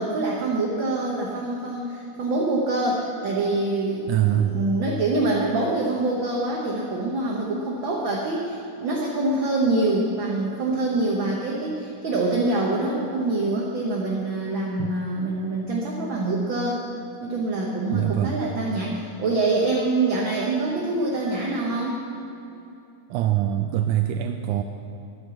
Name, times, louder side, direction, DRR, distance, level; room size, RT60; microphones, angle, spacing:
voice 1, 0.0-16.8 17.2-22.1, right 2 dB, 55° right, -3 dB, 1.4 m, -25 dB
voice 2, 4.1-4.6 14.8-14.9 17.9-18.4 23.1-24.6, right 12 dB, 80° right, 5 dB, 1.9 m, -23 dB
11.0 x 9.6 x 7.1 m, 2.7 s
omnidirectional pair, 3.6 m